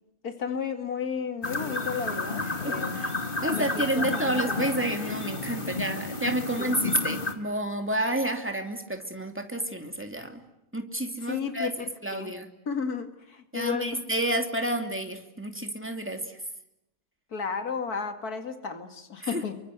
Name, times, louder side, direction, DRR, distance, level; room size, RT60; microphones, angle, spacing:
voice 1, 0.2-3.0 3.5-4.6 6.6-6.8 11.2-11.7 12.1-12.3 12.7-13.9 17.3-19.6, left 6 dB, 80° left, 8 dB, 2.8 m, -33 dB
sound 1, 1.4-7.3, left 3 dB, 35° left, 2.4 m, -31 dB
voice 2, 2.6-3.1 3.4-10.4 10.7-11.7 12.0-12.5 13.5-16.4 19.2-19.4, right 1 dB, 10° right, 5 dB, 2.8 m, -30 dB
29.5 x 24.0 x 8.1 m, 0.87 s
omnidirectional pair, 1.6 m